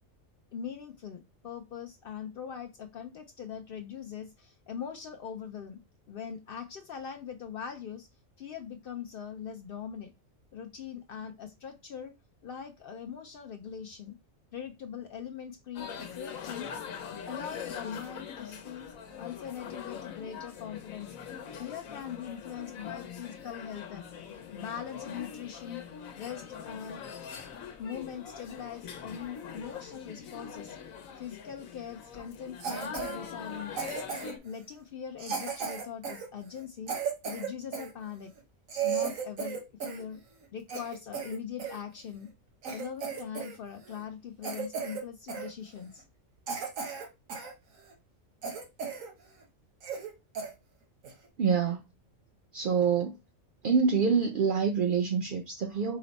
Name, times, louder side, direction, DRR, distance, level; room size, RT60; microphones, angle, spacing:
voice 1, 0.5-5.8 6.1-8.1 8.4-10.1 10.5-12.1 12.4-14.2 14.5-16.7 17.1-21.2 21.6-24.1 24.5-25.8 26.2-27.0 27.8-30.8 31.2-33.8 34.4-36.9 37.2-38.3 38.8-40.2 40.5-42.3 42.7-46.1, left 8 dB, 60° left, 0.6 m, -41 dB
sound 1, 15.8-34.4, left 7 dB, 85° left, 1.2 m, -43 dB
Cough, 32.6-33.2 33.8-34.5 35.2-37.9 38.4-38.5 38.7-40.0 40.4-41.8 42.3-42.4 42.6-43.6 43.8-44.0 44.4-45.0 45.3-45.5 46.0-46.1 46.5-47.5 47.9-48.0 48.4-49.1 49.4-49.5 49.8-50.1 50.3-50.5 51.0-51.3, right 6 dB, 80° right, 1.4 m, -35 dB
voice 2, 51.4-51.8 52.5-53.2 53.6-56.0, right 6 dB, 55° right, 0.6 m, -26 dB
4.9 x 2.1 x 4.0 m
omnidirectional pair, 1.4 m